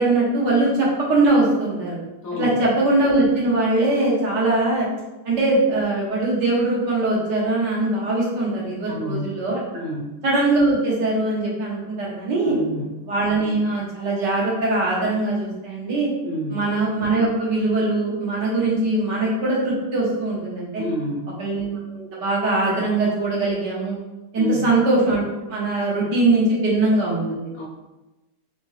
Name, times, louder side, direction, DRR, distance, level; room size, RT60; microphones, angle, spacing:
voice 1, 0.0-2.0 2.4-4.9 5.2-9.6 10.2-12.6 13.1-16.1 16.5-20.8 21.4-24.0 24.3-25.2 25.5-27.5, right 2 dB, 75° right, -5 dB, 2.0 m, -21 dB
voice 2, 2.2-2.7 8.9-9.3 9.7-10.2 12.4-12.9 16.2-16.6 20.8-21.4 24.3-24.7 27.5-27.7, equal, 60° left, -3 dB, 1.1 m, -29 dB
4.3 x 3.6 x 3.3 m, 1.1 s
omnidirectional pair, 1.9 m